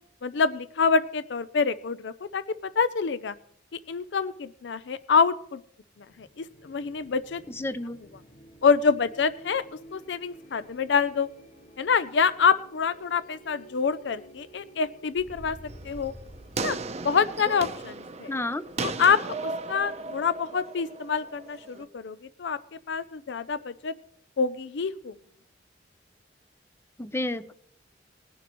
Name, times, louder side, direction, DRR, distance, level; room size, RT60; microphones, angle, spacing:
voice 1, 0.2-3.3 3.9-5.6 6.2-7.4 8.6-9.6 9.9-11.3 11.8-15.6 15.8-16.1 16.6-16.8 17.0-18.3 18.8-22.6 22.9-23.9 24.4-25.1, left 5 dB, 70° left, 15 dB, 0.5 m, -26 dB
sound 1, 5.9-19.4, equal, 50° left, 1.9 m, -51 dB
voice 2, 7.6-8.0 18.3-18.6 27.0-27.5, left 1 dB, 15° left, 14 dB, 0.5 m, -30 dB
sound 2, 15.7-21.8, right 3 dB, 35° right, 0.7 m, -36 dB
20.5 x 10.0 x 3.0 m, 0.65 s
head